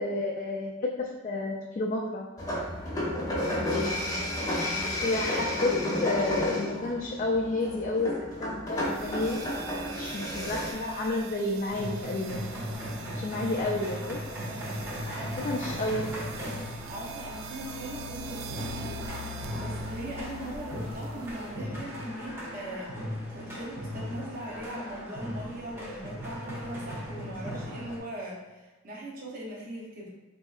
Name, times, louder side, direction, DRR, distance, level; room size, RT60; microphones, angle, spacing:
voice 1, 0.0-2.3 4.8-5.8 6.0-9.4 9.9-12.5 13.1-14.2 15.0-16.2, left 2 dB, 40° left, -1 dB, 0.3 m, -31 dB
sound 1, 2.4-10.7, left 1 dB, 20° left, 0.8 m, -31 dB
voice 2, 3.0-5.0 15.1-15.7 16.9-19.0 19.5-30.1, right 1 dB, 45° right, -4 dB, 0.7 m, -40 dB
sound 2, 8.8-21.6, right 3 dB, 85° right, 0.3 m, -43 dB
sound 3, 11.7-28.0, equal, 10° right, 0.6 m, -38 dB
3.8 x 2.6 x 2.4 m, 1.2 s
head